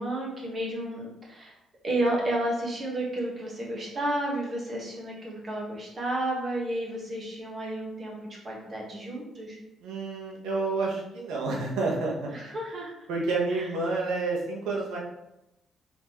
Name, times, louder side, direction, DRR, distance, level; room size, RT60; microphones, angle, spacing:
voice 1, 0.0-1.5 1.8-8.2 8.4-9.6 12.3-12.9 13.5-13.7, right 1 dB, 40° right, -3 dB, 1.6 m, -31 dB
voice 2, 9.8-12.3 13.1-15.0, right 3 dB, 90° right, -2 dB, 1.1 m, -29 dB
4.1 x 3.6 x 3.1 m, 0.88 s
cardioid pair, 90°, 0 cm